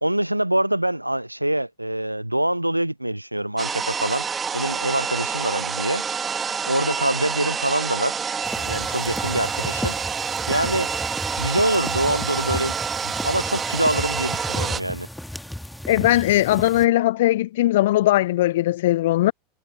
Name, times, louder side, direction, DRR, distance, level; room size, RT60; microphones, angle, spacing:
voice 1, 0.0-4.2 4.5-6.0 6.3-8.1 8.5-10.0 10.3-11.0 11.4-12.8 13.0-15.1, right 1 dB, 90° right, 0.4 m, -25 dB
sound 1, 3.6-14.8, right 6 dB, 20° right, 2.3 m, -28 dB
sound 2, 8.4-16.8, left 1 dB, ahead, 1.9 m, -34 dB
voice 2, 15.9-19.3, left 15 dB, 60° left, 0.4 m, -19 dB
figure-of-eight pair, 85°, 0 cm